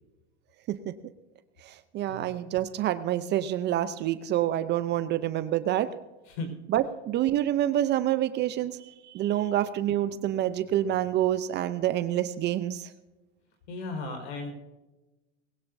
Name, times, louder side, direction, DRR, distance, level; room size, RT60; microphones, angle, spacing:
voice 1, 1.6-5.9 6.7-12.9, right 12 dB, 30° right, 13 dB, 0.6 m, -27 dB
voice 2, 13.7-14.5, left 3 dB, 65° left, 4 dB, 5.1 m, -35 dB
20.5 x 16.0 x 2.7 m, 1.1 s
supercardioid pair, 130°, 35 cm